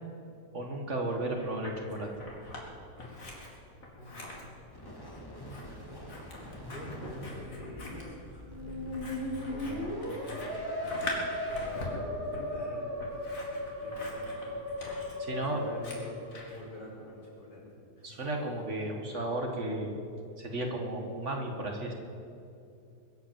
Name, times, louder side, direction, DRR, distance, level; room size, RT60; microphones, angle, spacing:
voice 1, 0.5-2.1 15.2-15.6 18.0-20.0 20.4-21.9, right 1 dB, 45° right, 2 dB, 2.0 m, -34 dB
Scissors, 1.1-2.6 3.0-16.6, left 2 dB, 55° left, 2.9 m, -44 dB
voice 2, 4.0-4.5 5.8-6.3 6.5-8.9 9.5-14.3 15.4-17.7 18.0-18.2, left 1 dB, 85° left, -5 dB, 5.6 m, -46 dB
sound 1, 4.7-11.9, left 1 dB, 15° left, 2.4 m, -46 dB
Musical instrument, 8.4-16.5, left 1 dB, 15° right, 2.9 m, -37 dB
22.5 x 8.4 x 7.5 m, 2.6 s
omnidirectional pair, 1.8 m